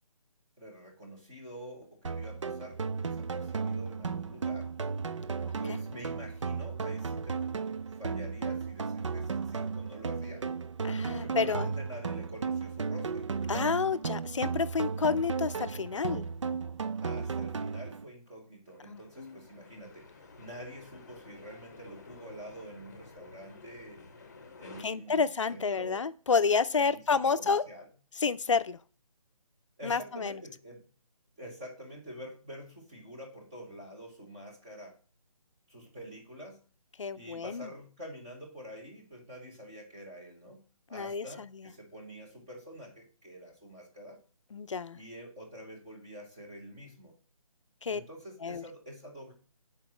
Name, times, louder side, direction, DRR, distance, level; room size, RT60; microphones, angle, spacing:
voice 1, 0.6-4.7 5.6-7.4 8.0-10.5 11.1-13.3 17.0-24.0 24.6-26.0 26.7-27.9 29.8-30.8 31.4-35.0 35.7-36.6 37.1-40.6 40.9-44.2 44.9-47.2 47.8-49.3, equal, 5° right, -2 dB, 0.7 m, -47 dB
sound 1, 2.0-18.0, right 5 dB, 50° right, 0.5 m, -34 dB
voice 2, 10.8-11.7 13.5-16.3 18.9-19.3 24.8-27.6 28.2-28.8 29.8-30.3 37.0-37.7 40.9-41.3 44.5-45.0 47.8-48.0 48.4-48.6, left 5 dB, 55° left, 14 dB, 0.6 m, -29 dB
sound 2, 18.7-24.8, left 3 dB, 30° left, 0.8 m, -52 dB
7.8 x 4.7 x 6.0 m, 0.40 s
hypercardioid pair, 175°, 19 cm